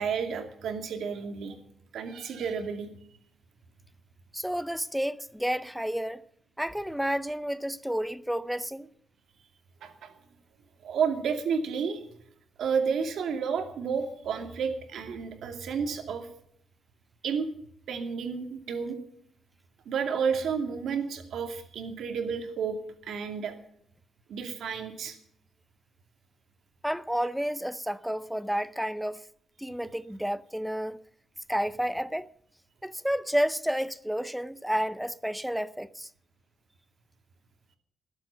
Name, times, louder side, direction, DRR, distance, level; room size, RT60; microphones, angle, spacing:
voice 1, 0.0-1.5 1.9-2.9 9.8-10.1 10.8-12.0 12.6-16.3 17.2-17.5 17.9-19.0 19.9-22.8 23.0-23.5 24.3-25.2, right 6 dB, 70° right, 2.5 m, -31 dB
voice 2, 4.3-6.2 6.6-8.9 26.8-29.2 29.6-31.0 31.5-32.3 32.8-36.1, equal, ahead, 0.5 m, -30 dB
20.0 x 8.2 x 6.9 m
wide cardioid pair, 180°, 0 cm